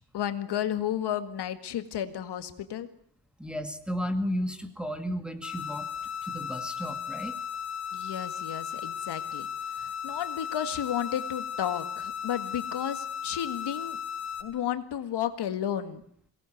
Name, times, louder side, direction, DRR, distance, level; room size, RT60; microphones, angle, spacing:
voice 1, 0.1-2.9 7.9-9.5 9.8-14.0 14.4-16.0, left 10 dB, 85° left, 9 dB, 1.9 m, -32 dB
voice 2, 3.4-5.9 6.2-7.3, equal, ahead, 8 dB, 2.2 m, -33 dB
sound 1, 5.4-14.4, left 7 dB, 40° left, 4.9 m, -36 dB
23.0 x 18.5 x 9.3 m, 0.65 s
wide cardioid pair, 150°, 39 cm